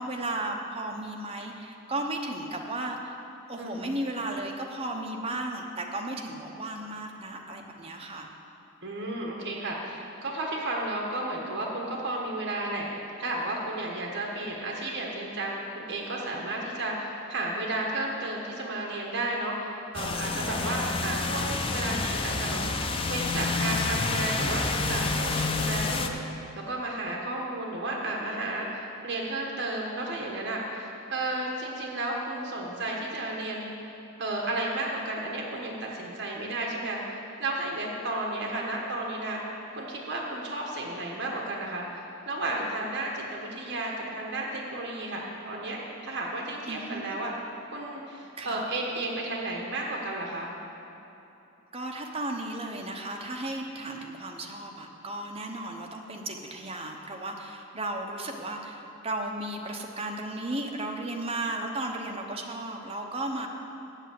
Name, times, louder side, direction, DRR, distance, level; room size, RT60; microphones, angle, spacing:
voice 1, 0.0-3.2 3.5-8.3 46.7-47.1 48.4-48.6 51.7-63.5, right 2 dB, 25° right, 2 dB, 0.9 m, -35 dB
voice 2, 3.6-3.9 8.8-12.9 13.2-26.2 26.6-33.7 34.2-39.4 39.8-47.3 47.7-50.5, right 2 dB, 55° right, -2 dB, 1.3 m, -33 dB
sound 1, 19.9-26.1, left 3 dB, 25° left, 0.5 m, -29 dB
8.1 x 8.1 x 7.7 m, 3.0 s
head